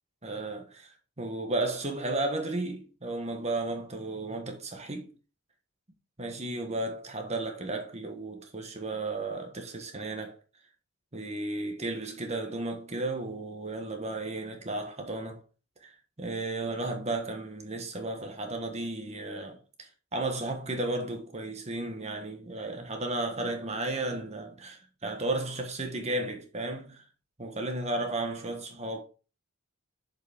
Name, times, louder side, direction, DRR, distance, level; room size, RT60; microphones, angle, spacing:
voice 1, 0.2-5.1 6.2-10.4 11.1-15.4 15.8-27.0 27.4-29.0, right 2 dB, 30° right, 1.4 m, -34 dB
7.2 x 5.3 x 3.6 m
head